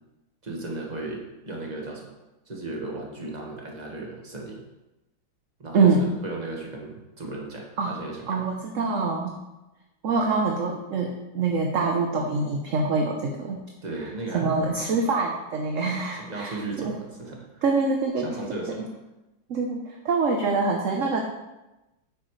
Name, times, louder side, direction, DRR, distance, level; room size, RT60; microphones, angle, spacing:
voice 1, 0.4-2.1 2.5-4.6 5.6-8.5 13.8-15.0 15.9-17.6 18.2-18.9, right 2 dB, 25° right, -1 dB, 1.6 m, -36 dB
voice 2, 5.7-6.1 7.8-8.0 8.3-9.4 10.0-13.6 14.0-17.0 17.6-18.4 18.8-18.9 19.5-21.2, right 4 dB, 55° right, 1 dB, 1.0 m, -25 dB
10.5 x 8.5 x 3.2 m, 1.0 s
omnidirectional pair, 2.1 m